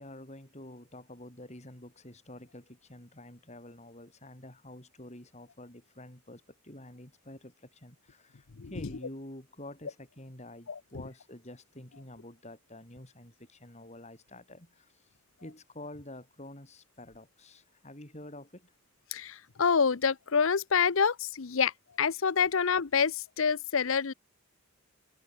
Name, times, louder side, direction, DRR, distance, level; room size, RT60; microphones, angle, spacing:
voice 1, 0.0-15.1 15.4-18.7, left 1 dB, 30° left, 4.2 m, -48 dB
voice 2, 8.6-8.9 10.7-10.8 19.1-21.7 22.0-24.1, left 6 dB, 65° left, 0.7 m, -27 dB
head